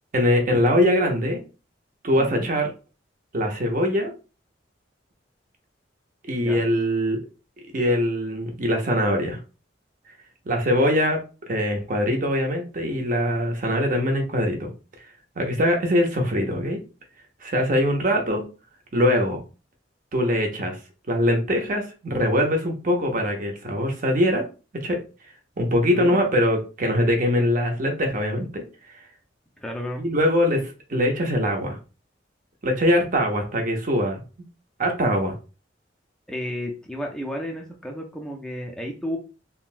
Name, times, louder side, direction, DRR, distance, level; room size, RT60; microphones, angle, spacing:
voice 1, 0.1-1.4 2.0-2.7 3.3-4.1 6.3-7.2 7.7-9.4 10.5-14.7 15.4-16.8 17.4-18.4 18.9-19.4 20.1-20.8 21.1-24.4 24.7-25.0 25.6-28.6 30.0-30.6 30.9-31.8 32.6-34.2 34.8-35.3, equal, 45° right, 3 dB, 0.7 m, -22 dB
voice 2, 2.2-2.5 6.4-6.6 25.9-26.2 29.6-30.0 36.3-39.2, equal, 5° left, 0 dB, 0.4 m, -32 dB
3.7 x 2.2 x 2.5 m, 0.33 s
head